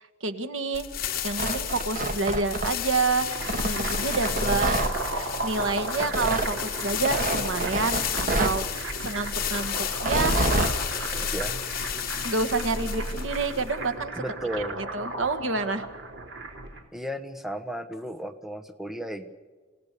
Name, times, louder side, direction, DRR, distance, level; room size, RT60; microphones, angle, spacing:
voice 1, 0.2-0.9 1.2-4.7 5.0-9.8 10.0-10.4 10.9-11.0 12.2-14.2 14.9-15.9, right 3 dB, 90° right, 8 dB, 1.6 m, -28 dB
sound 1, 0.7-13.9, left 8 dB, 55° left, 2.2 m, -32 dB
Tearing, 1.2-3.0 3.5-4.9 6.0-6.5 7.0-8.6 9.9-10.8, right 2 dB, 45° right, 1.7 m, -27 dB
sound 2, 3.1-16.8, right 2 dB, 65° right, 3.3 m, -36 dB
voice 2, 4.3-4.7 11.3-11.6 14.2-14.8 16.9-19.3, right 1 dB, ahead, 8 dB, 1.1 m, -34 dB
28.5 x 17.5 x 6.8 m, 1.4 s
head